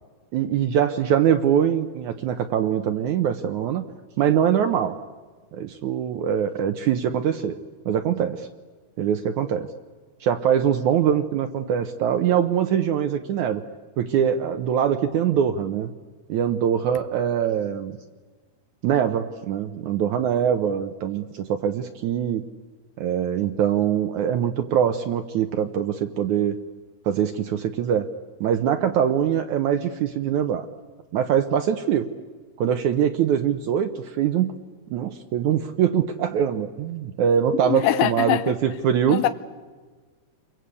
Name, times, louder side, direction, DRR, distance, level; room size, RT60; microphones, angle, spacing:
voice 1, 0.3-3.8 4.2-4.9 5.5-7.5 7.8-8.5 9.0-9.7 10.2-13.6 14.0-15.9 16.3-18.0 18.8-22.4 23.0-26.6 27.0-28.0 28.4-30.7 31.1-32.1 32.6-33.9 34.2-34.5 34.9-39.2, right 9 dB, 75° right, 1.8 m, -23 dB
voice 2, 37.6-38.5 39.1-39.3, left 13 dB, 75° left, 2.5 m, -22 dB
29.0 x 23.0 x 8.3 m
omnidirectional pair, 4.6 m